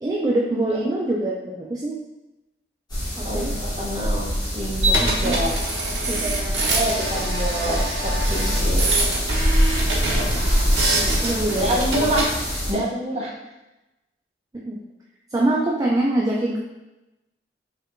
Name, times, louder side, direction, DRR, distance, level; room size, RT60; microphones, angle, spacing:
voice 1, 0.0-2.0 3.2-3.6 5.0-5.4 6.0-7.3 10.9-11.8 14.6-14.8 15.3-16.6, right 1 dB, 20° right, -3 dB, 0.3 m, -25 dB
sound 1, 2.9-12.7, equal, 25° left, 1.2 m, -24 dB
voice 2, 3.2-5.5 6.7-9.3 11.6-13.3, right 1 dB, 35° right, -4 dB, 0.8 m, -27 dB
sound 2, 4.8-12.3, right 2 dB, 85° right, 0.8 m, -25 dB
4.3 x 3.3 x 2.5 m, 0.99 s
head